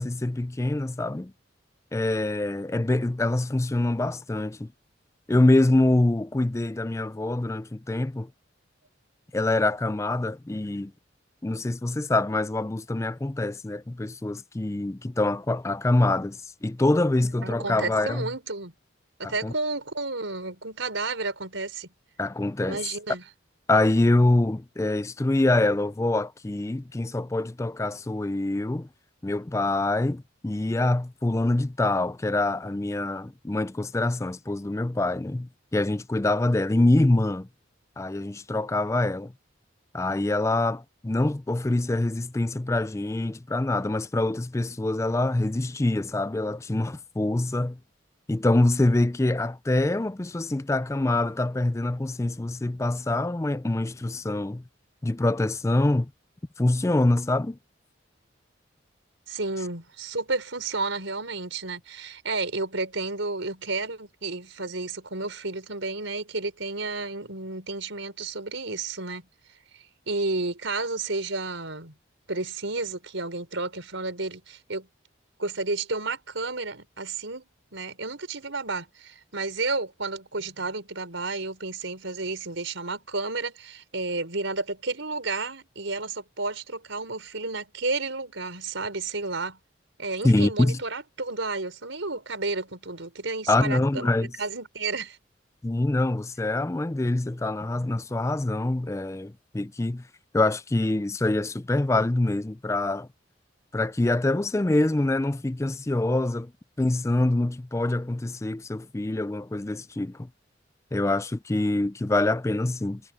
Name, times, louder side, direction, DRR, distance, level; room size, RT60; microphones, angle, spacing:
voice 1, 0.0-1.3 1.9-4.7 5.3-8.3 9.3-10.9 11.4-18.3 19.2-19.5 22.2-22.8 23.7-28.9 29.2-37.5 38.0-39.3 39.9-47.8 48.3-54.6 55.0-56.1 56.6-57.6 90.2-90.8 93.5-94.3 95.6-100.0 100.3-103.1 103.7-106.5 106.8-110.3 110.9-113.0, left 2 dB, 15° left, 0.4 m, -25 dB
voice 2, 17.4-18.7 19.2-21.9 22.7-23.2 59.3-69.3 69.7-71.9 72.3-74.9 75.4-89.6 90.0-95.2, right 3 dB, 80° right, 4.5 m, -32 dB
head